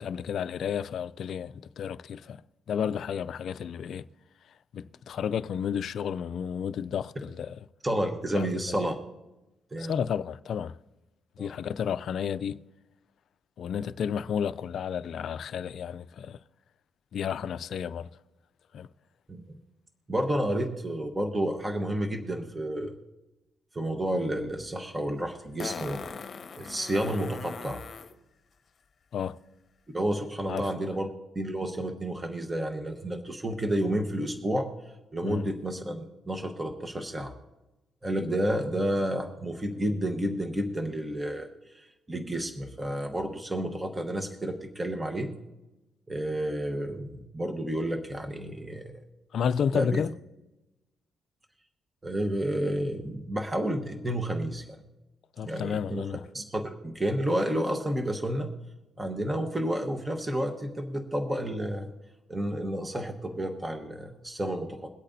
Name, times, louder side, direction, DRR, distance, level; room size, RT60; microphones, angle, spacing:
voice 1, 0.0-2.4 2.7-4.0 4.7-7.6 8.3-8.5 9.8-10.8 11.4-12.6 13.6-16.4 17.1-18.1 18.7-18.9 29.1-29.4 30.5-30.9 35.2-35.5 49.3-50.1 55.4-56.2, left 8 dB, 65° left, 0.3 m, -32 dB
voice 2, 7.8-8.9 9.7-10.0 11.4-11.5 19.3-19.6 20.1-22.9 23.7-26.0 26.6-27.8 29.9-31.1 31.3-34.7 35.1-37.3 38.0-45.3 46.1-48.9 49.7-50.0 52.0-54.8 55.4-56.0 56.3-58.5 59.0-61.9 62.3-64.9, right 1 dB, 20° right, 1.1 m, -30 dB
Fart, 24.5-24.6 25.6-28.1 30.6-30.7, left 5 dB, 45° left, 0.9 m, -40 dB
22.5 x 8.3 x 2.7 m
cardioid pair, 90°, 0 cm